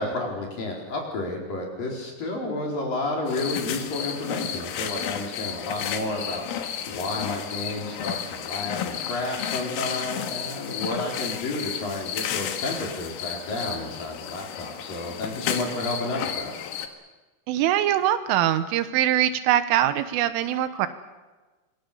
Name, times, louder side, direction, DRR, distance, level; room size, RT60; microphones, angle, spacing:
voice 1, 0.0-6.5 6.9-16.5, left 2 dB, 45° left, 0 dB, 6.0 m, -31 dB
sound 1, 3.3-16.9, left 9 dB, 85° left, 4.1 m, -32 dB
voice 2, 17.5-20.9, right 12 dB, 85° right, 11 dB, 3.7 m, -22 dB
26.0 x 22.5 x 7.0 m, 1.2 s
omnidirectional pair, 5.6 m